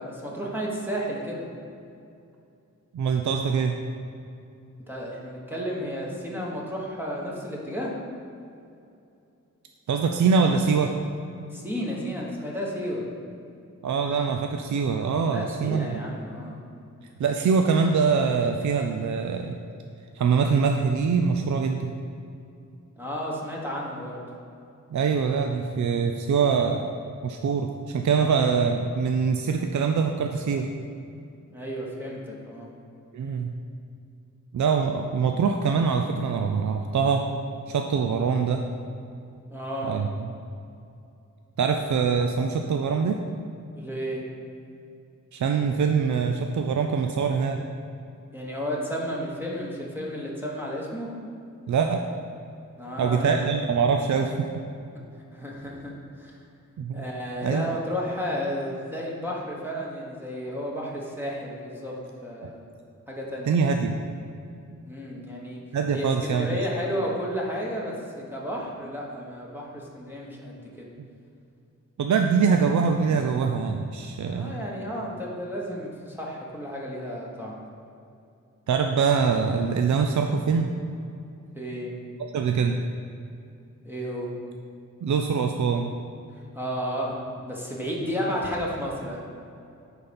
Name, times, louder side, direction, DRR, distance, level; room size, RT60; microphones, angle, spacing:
voice 1, 0.0-1.5 4.9-8.0 11.5-13.1 15.3-16.6 22.9-24.2 31.5-32.7 39.5-40.0 43.8-44.2 48.3-51.1 52.8-53.5 55.3-56.4 56.9-62.6 63.1-63.6 64.9-65.6 65.9-70.9 74.3-77.6 81.5-82.0 83.8-84.3 86.5-89.2, equal, 5° right, -4 dB, 1.1 m, -32 dB
voice 2, 2.9-3.8 9.9-10.9 13.8-16.0 17.2-19.5 20.1-21.9 24.9-26.9 27.2-30.7 33.1-33.5 34.5-37.2 37.7-38.6 39.8-40.1 41.6-43.2 45.3-47.6 51.7-52.0 53.0-54.5 56.8-57.1 57.4-57.7 63.5-63.9 65.7-66.7 72.0-74.6 78.7-80.7 82.3-82.8 85.0-85.9, right 5 dB, 65° right, 4 dB, 0.5 m, -24 dB
9.8 x 4.1 x 5.2 m, 2.6 s
wide cardioid pair, 120°, 31 cm